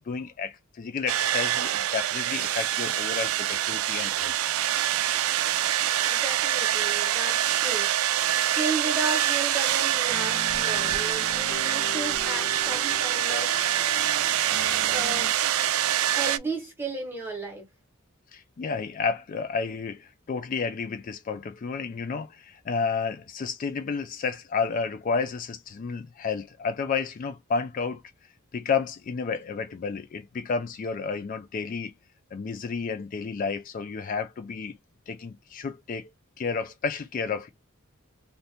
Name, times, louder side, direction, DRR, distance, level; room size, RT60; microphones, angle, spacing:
voice 1, 0.1-4.3 18.3-28.0 28.5-31.9 32.3-34.8 35.1-36.1 36.4-37.5, left 5 dB, 40° left, 0.3 m, -31 dB
sound 1, 1.1-16.4, right 11 dB, 85° right, 0.4 m, -25 dB
voice 2, 6.1-7.9 8.5-13.6 14.9-17.7, right 3 dB, 10° right, 1.2 m, -34 dB
sound 2, 10.1-15.3, left 3 dB, 65° left, 0.7 m, -40 dB
2.8 x 2.7 x 3.3 m
head